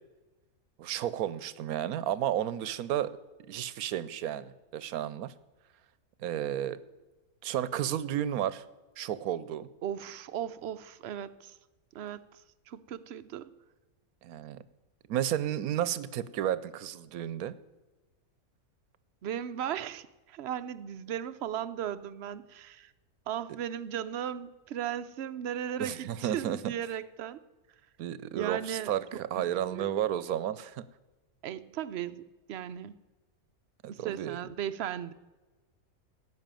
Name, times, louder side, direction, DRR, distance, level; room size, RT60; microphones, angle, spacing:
voice 1, 0.8-3.1 3.4-5.3 6.2-6.8 7.4-8.6 9.0-9.7 14.2-14.6 15.1-17.5 25.8-26.7 28.0-30.9 33.8-34.4, right 11 dB, 85° right, 17 dB, 1.1 m, -32 dB
voice 2, 9.8-11.5 11.9-12.3 12.7-13.5 19.2-22.9 23.3-27.4 28.3-28.9 29.4-29.9 31.4-33.0 33.9-35.1, right 10 dB, 60° right, 14 dB, 0.7 m, -36 dB
16.0 x 6.2 x 8.9 m, 1.2 s
omnidirectional pair, 1.5 m